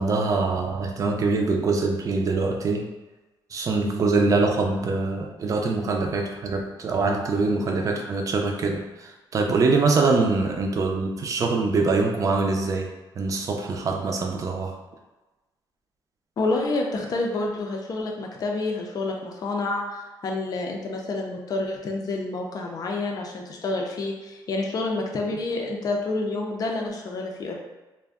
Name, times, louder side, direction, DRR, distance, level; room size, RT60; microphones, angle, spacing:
voice 1, 0.0-2.9 3.5-12.9 13.2-14.7, right 3 dB, 40° right, 2 dB, 0.5 m, -24 dB
voice 2, 16.4-27.6, left 2 dB, 45° left, 1 dB, 0.5 m, -28 dB
2.5 x 2.1 x 3.5 m, 1.1 s
cardioid pair, 115°, 9 cm